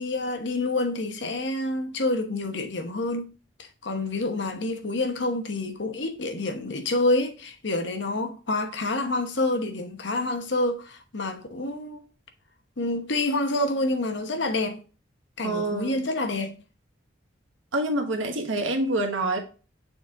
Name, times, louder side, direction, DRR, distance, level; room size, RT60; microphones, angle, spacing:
voice 1, 0.0-3.3 3.6-12.0 12.8-14.8 15.4-16.5, left 2 dB, 65° left, 1.0 m, -28 dB
voice 2, 15.4-16.0 17.7-19.4, right 2 dB, 90° right, 1.4 m, -26 dB
6.7 x 3.9 x 3.7 m
head